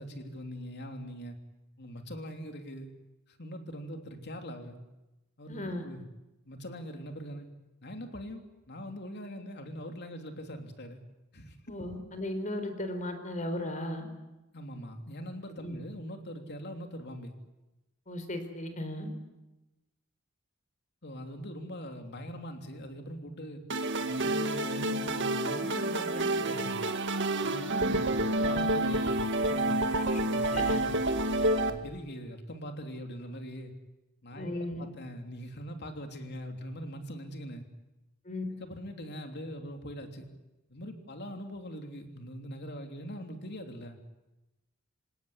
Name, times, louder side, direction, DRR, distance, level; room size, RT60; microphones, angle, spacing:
voice 1, 0.0-1.4 1.8-2.9 3.3-4.8 5.4-6.0 6.5-7.5 7.8-11.0 11.3-11.6 14.5-17.3 21.0-23.6 24.0-26.8 27.4-30.9 31.5-33.7 34.2-37.7 38.6-40.3 40.7-44.0, equal, 50° left, 5 dB, 3.2 m, -42 dB
voice 2, 5.5-5.9 11.7-14.0 15.6-15.8 18.1-19.1 30.5-30.8 34.4-34.9 38.2-38.4, left 1 dB, 35° left, 8 dB, 4.1 m, -36 dB
sound 1, 23.7-31.7, right 1 dB, 55° right, 2.0 m, -29 dB
sound 2, 30.5-31.8, right 1 dB, 20° right, 1.9 m, -46 dB
27.0 x 17.5 x 9.9 m, 1.0 s
head